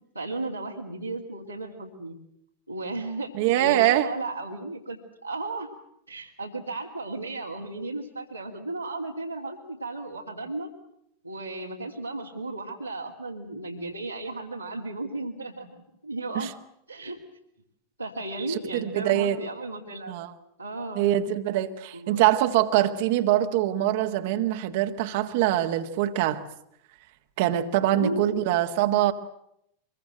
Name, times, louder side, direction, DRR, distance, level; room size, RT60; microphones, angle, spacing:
voice 1, 0.1-2.1 2.7-5.7 6.1-10.7 11.2-15.8 16.0-16.5 16.9-17.2 18.0-20.1 20.6-21.1 21.9-22.2 27.9-28.4, right 2 dB, 90° right, 3.0 m, -34 dB
voice 2, 3.3-4.1 16.4-16.5 18.5-19.4 20.1-20.3 21.0-26.4 27.4-29.1, right 13 dB, 50° right, 1.7 m, -24 dB
25.0 x 23.0 x 7.8 m
figure-of-eight pair, 90°, 0 cm